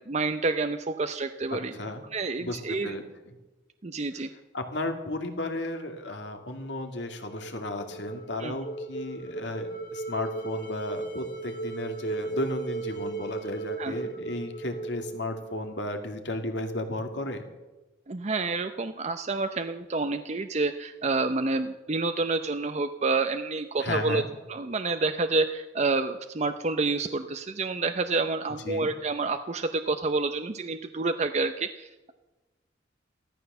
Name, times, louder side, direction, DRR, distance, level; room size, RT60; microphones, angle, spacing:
voice 1, 0.0-1.7 2.1-2.9 3.8-4.3 8.4-8.5 13.8-13.9 18.1-24.2 24.5-32.1, right 3 dB, 35° right, 8 dB, 0.6 m, -28 dB
voice 2, 1.5-2.0 2.4-3.3 4.5-17.4 23.8-24.3 28.6-28.9, left 1 dB, 70° left, 5 dB, 2.4 m, -34 dB
sound 1, 6.8-16.0, right 3 dB, 50° left, 2.8 m, -37 dB
15.5 x 13.5 x 6.8 m, 1.1 s
head